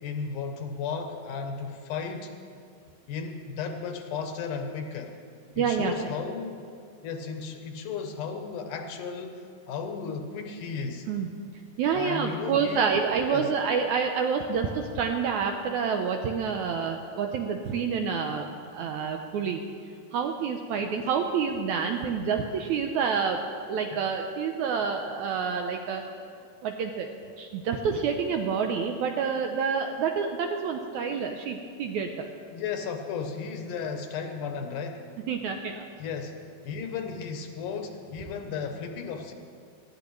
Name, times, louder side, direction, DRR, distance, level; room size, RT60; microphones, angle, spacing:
voice 1, 0.0-2.3 3.1-5.2 5.6-6.7 7.0-11.1 11.9-12.9 13.3-13.5 20.8-20.9 23.9-24.0 32.5-35.2 36.0-39.3, left 5 dB, 75° left, 5 dB, 2.1 m, -35 dB
voice 2, 5.6-6.1 11.1-11.3 11.8-19.6 20.1-26.0 26.6-27.1 27.4-32.3 35.3-35.9, right 6 dB, 80° right, 4 dB, 1.7 m, -28 dB
19.0 x 13.5 x 3.1 m, 2.4 s
omnidirectional pair, 3.9 m